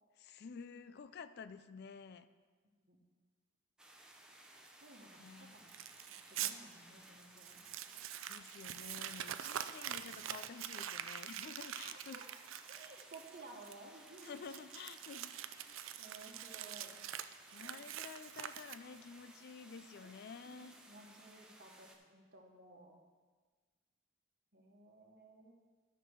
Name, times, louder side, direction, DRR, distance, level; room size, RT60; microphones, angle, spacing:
voice 1, 0.2-2.3 5.2-5.6 8.3-12.2 14.2-15.4 15.7-15.8 17.5-20.8, left 5 dB, 55° left, 13 dB, 0.4 m, -51 dB
sound 1, 3.8-22.0, right 1 dB, 5° right, 0.9 m, -59 dB
voice 2, 4.8-5.7 6.2-7.6 12.1-12.3 12.7-14.6 16.0-16.9 17.6-17.8 20.0-20.1 20.4-23.0 24.5-25.5, right 2 dB, 50° right, 1 dB, 1.4 m, -56 dB
Crumpling crinkling, 5.7-6.5 7.0-7.1 7.4-19.1, right 11 dB, 70° right, 0.4 m, -45 dB
12.5 x 6.0 x 4.6 m, 1.4 s
head